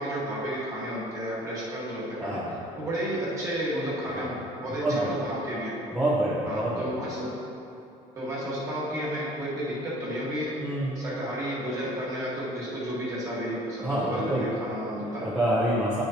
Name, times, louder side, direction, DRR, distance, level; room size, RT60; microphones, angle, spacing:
voice 1, 0.0-2.4 2.8-5.7 6.4-7.3 8.1-10.7 10.9-15.3, equal, 25° right, -7 dB, 1.7 m, -32 dB
voice 2, 2.2-2.6 4.2-4.3 4.8-5.2 5.9-6.9 10.6-11.0 13.8-14.5 15.2-16.0, right 1 dB, 10° right, -9 dB, 0.8 m, -27 dB
9.8 x 6.3 x 2.9 m, 2.7 s
cardioid pair, 175°, 13 cm